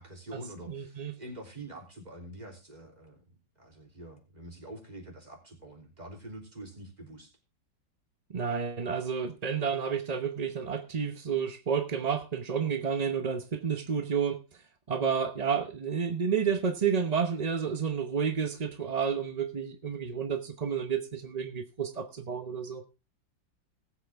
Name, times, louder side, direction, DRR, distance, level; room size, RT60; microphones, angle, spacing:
voice 1, 0.0-3.2 3.6-7.3, right 1 dB, 20° right, 3.3 m, -46 dB
voice 2, 0.7-1.1 8.3-14.4 14.9-22.8, right 6 dB, 40° right, 0.6 m, -30 dB
19.0 x 8.0 x 3.5 m
omnidirectional pair, 2.0 m